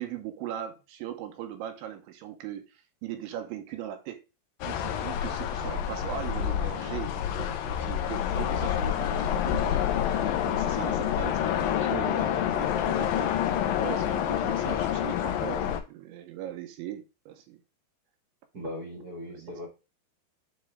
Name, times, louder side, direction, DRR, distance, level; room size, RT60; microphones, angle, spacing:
voice 1, 0.0-4.2 4.6-9.8 10.5-13.4 13.8-17.6 19.3-19.5, right 11 dB, 80° right, 3.1 m, -39 dB
sound 1, 4.6-15.8, left 10 dB, 90° left, 2.0 m, -28 dB
voice 2, 18.5-19.7, left 1 dB, 40° right, 1.3 m, -38 dB
9.6 x 3.6 x 3.5 m
omnidirectional pair, 5.5 m